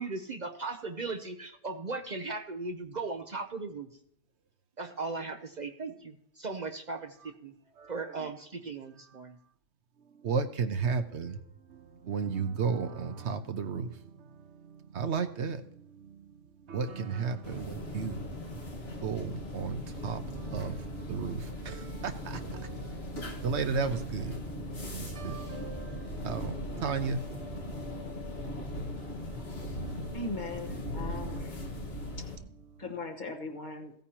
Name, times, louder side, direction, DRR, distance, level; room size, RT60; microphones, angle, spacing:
voice 1, 0.0-3.9 4.8-7.5 7.9-9.4, right 3 dB, 45° right, 0.8 m, -37 dB
voice 2, 7.8-8.3 10.2-11.4 11.7-16.4 16.6-30.2, right 5 dB, 75° right, 1.2 m, -35 dB
sound 1, 17.4-32.4, left 1 dB, 65° left, 1.9 m, -39 dB
voice 3, 30.1-31.5 32.8-33.9, left 3 dB, 45° left, 1.5 m, -39 dB
16.0 x 9.1 x 2.9 m
omnidirectional pair, 1.2 m